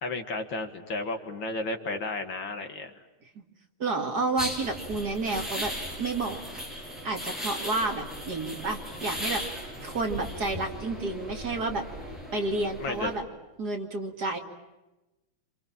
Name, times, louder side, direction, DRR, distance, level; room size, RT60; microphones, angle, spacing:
voice 1, 0.0-3.0 12.8-13.1, left 3 dB, 60° left, 6 dB, 2.7 m, -33 dB
voice 2, 3.8-5.7 6.0-6.4 7.0-9.4 9.8-11.8 12.3-13.2 13.6-14.4, right 3 dB, 45° right, 3 dB, 2.9 m, -30 dB
sound 1, 4.4-13.2, equal, ahead, 6.6 m, -37 dB
28.0 x 27.0 x 7.4 m, 1.0 s
omnidirectional pair, 2.4 m